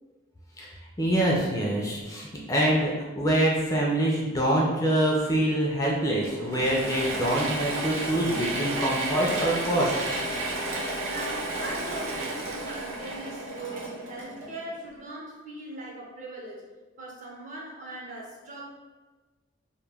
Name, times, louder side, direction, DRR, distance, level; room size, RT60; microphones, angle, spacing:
voice 1, 1.0-9.9, right 1 dB, 15° left, -3 dB, 0.3 m, -25 dB
Mechanisms / Drill, 6.2-14.8, right 2 dB, 80° right, 0.6 m, -32 dB
voice 2, 11.0-16.6 17.0-18.7, right 2 dB, 40° right, -4 dB, 0.6 m, -40 dB
2.2 x 2.1 x 3.3 m, 1.3 s
head